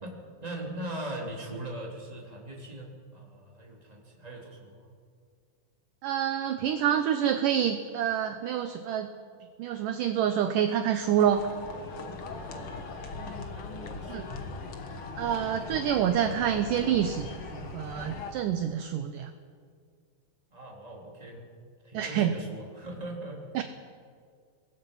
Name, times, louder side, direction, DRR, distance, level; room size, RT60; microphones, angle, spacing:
voice 1, 0.0-4.9 12.4-13.1 13.5-14.3 20.5-21.4 21.8-23.6, right 1 dB, 10° right, -2 dB, 3.3 m, -41 dB
voice 2, 6.0-9.1 9.6-11.4 14.1-14.2 15.2-19.3 21.9-22.4 23.6-23.7, right 9 dB, 75° right, 8 dB, 2.2 m, -27 dB
sound 1, 10.9-18.3, left 3 dB, 55° left, 1.6 m, -39 dB
25.0 x 20.5 x 5.6 m, 2.1 s
omnidirectional pair, 4.4 m